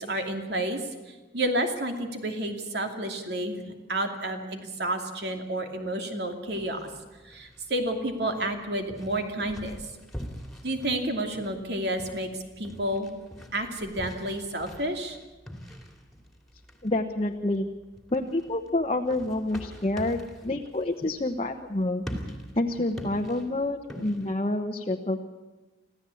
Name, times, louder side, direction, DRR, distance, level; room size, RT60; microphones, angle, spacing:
voice 1, 0.0-3.6 3.9-6.9 7.2-10.0 10.6-13.2 13.5-15.2, right 1 dB, 60° right, 4 dB, 2.7 m, -30 dB
sound 1, 6.5-24.3, equal, ahead, 2.6 m, -44 dB
voice 2, 16.8-17.7 18.1-22.0 22.5-25.2, left 2 dB, 35° left, 2 dB, 1.0 m, -28 dB
26.0 x 15.5 x 8.5 m, 1.2 s
head